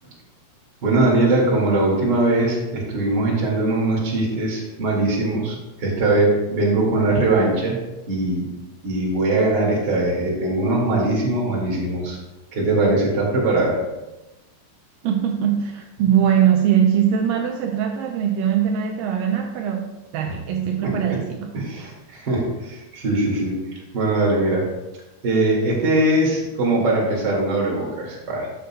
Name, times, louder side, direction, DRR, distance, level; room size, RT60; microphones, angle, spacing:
voice 1, 0.8-7.8 8.1-8.5 8.8-12.2 12.5-13.8 20.8-21.2 21.5-23.6 23.9-24.6 25.2-28.5, right 2 dB, 35° right, -3 dB, 1.9 m, -21 dB
voice 2, 15.0-21.5, right 9 dB, 85° right, 3 dB, 2.0 m, -21 dB
12.0 x 7.9 x 2.2 m, 1.0 s
omnidirectional pair, 4.6 m